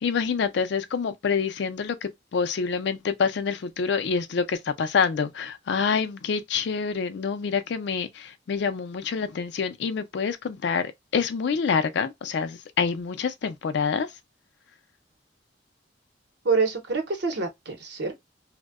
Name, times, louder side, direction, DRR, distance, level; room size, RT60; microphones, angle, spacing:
voice 1, 0.0-14.1, left 5 dB, 65° left, 0.4 m, -27 dB
voice 2, 16.4-18.1, right 4 dB, 65° right, 0.8 m, -26 dB
2.6 x 2.1 x 2.3 m
head